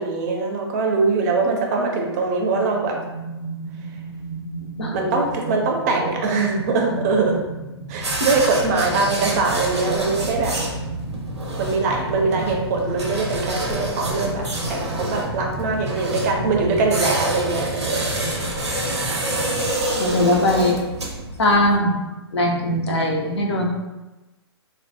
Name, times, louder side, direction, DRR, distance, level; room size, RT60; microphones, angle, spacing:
voice 1, 0.0-2.9 4.9-7.4 7.9-10.5 11.6-14.4 14.7-18.0 19.5-19.7 20.0-20.2, right 3 dB, 40° right, 1 dB, 0.5 m, -22 dB
sound 1, 2.5-19.7, right 1 dB, 15° left, 0.5 m, -33 dB
sound 2, 7.9-21.8, right 1 dB, 85° right, 0.5 m, -28 dB
voice 2, 20.0-20.8 21.4-22.0 22.3-23.7, left 1 dB, 75° left, 0 dB, 0.5 m, -20 dB
2.1 x 2.1 x 2.7 m, 1.1 s
figure-of-eight pair, 120°, 14 cm